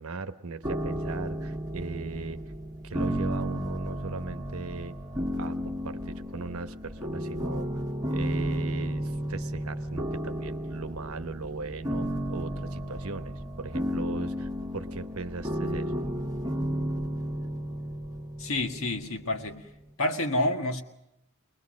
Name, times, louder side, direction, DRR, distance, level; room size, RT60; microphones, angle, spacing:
voice 1, 0.0-2.4 2.8-4.9 5.3-7.7 8.1-15.9, right 4 dB, 70° right, 10 dB, 1.0 m, -38 dB
sound 1, 0.6-19.6, equal, 15° right, 1.3 m, -33 dB
voice 2, 18.4-19.6 20.0-20.8, left 1 dB, 60° left, 4 dB, 1.7 m, -28 dB
23.5 x 20.5 x 6.4 m, 0.90 s
head